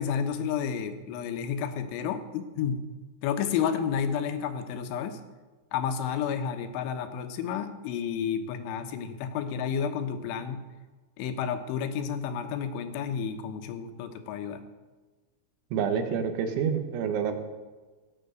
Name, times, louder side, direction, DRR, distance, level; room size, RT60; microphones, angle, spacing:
voice 1, 0.0-2.8 3.2-5.2 5.7-10.6 11.2-14.6, left 7 dB, 80° left, 8 dB, 3.4 m, -31 dB
voice 2, 15.7-17.5, right 7 dB, 75° right, 6 dB, 3.6 m, -28 dB
17.0 x 8.1 x 8.2 m, 1.3 s
omnidirectional pair, 5.6 m